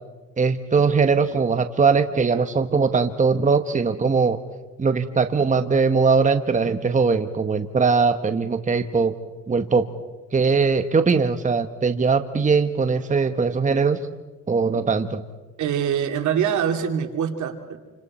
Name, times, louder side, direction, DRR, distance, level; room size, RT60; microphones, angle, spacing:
voice 1, 0.4-4.4 4.8-9.1 9.5-9.8 10.3-14.0 14.5-15.2, right 5 dB, 25° right, 8 dB, 1.1 m, -20 dB
voice 2, 15.6-17.8, right 8 dB, 75° right, 4 dB, 2.5 m, -24 dB
28.5 x 26.0 x 4.3 m, 1.2 s
cardioid pair, 90°, 30 cm